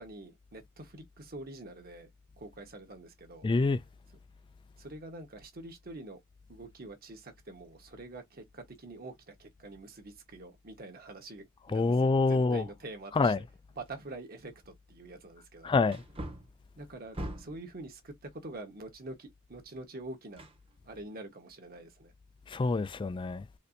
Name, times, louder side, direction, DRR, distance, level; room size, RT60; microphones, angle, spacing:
voice 1, 0.0-2.1 2.4-3.5 4.8-6.2 6.5-13.3 13.8-15.7 16.8-20.5 20.8-22.1, right 2 dB, 45° right, 1.2 m, -46 dB
voice 2, 3.4-3.8 11.7-12.7 13.1-13.5 15.6-16.0 22.5-23.5, left 3 dB, 25° left, 0.3 m, -26 dB
Wood, 14.5-14.6 15.9-17.7 20.4-21.1 21.5-21.6, right 1 dB, 25° right, 1.0 m, -42 dB
4.2 x 2.6 x 2.6 m
head